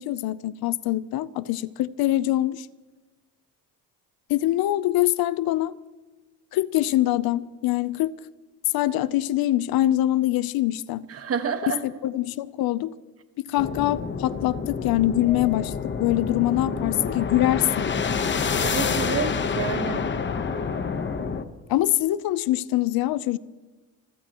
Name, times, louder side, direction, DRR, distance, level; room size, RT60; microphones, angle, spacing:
voice 1, 0.0-2.7 4.3-5.7 6.5-8.1 8.7-11.0 11.8-12.9 13.4-15.7 16.0-17.9 21.7-23.4, left 14 dB, 80° left, 0.7 m, -24 dB
voice 2, 11.1-11.8 18.6-20.1, right 6 dB, 40° right, 1.5 m, -29 dB
sound 1, 13.6-21.4, left 5 dB, 30° left, 1.0 m, -28 dB
sound 2, 15.3-21.2, left 2 dB, 5° left, 2.0 m, -42 dB
28.5 x 15.5 x 3.0 m
cardioid pair, 130°, 35 cm